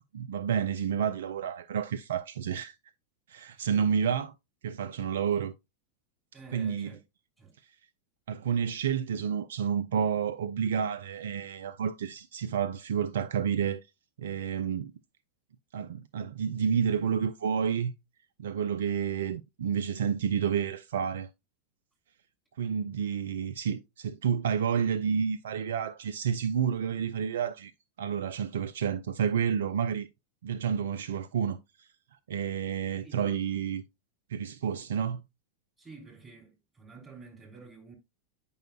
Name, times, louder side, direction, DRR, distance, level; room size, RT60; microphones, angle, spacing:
voice 1, 0.1-2.8 3.3-4.3 4.6-5.5 6.5-6.9 8.3-13.8 14.2-14.9 15.7-17.9 18.4-21.3 22.6-27.7 28.0-30.1 30.4-31.9 32.3-33.8 34.3-35.2, right 7 dB, 60° right, 0.4 m, -30 dB
voice 2, 6.3-7.0 7.4-7.5 33.0-33.3 35.8-37.9, right 4 dB, 10° right, 3.2 m, -50 dB
9.0 x 5.5 x 2.3 m
figure-of-eight pair, 90°, 0 cm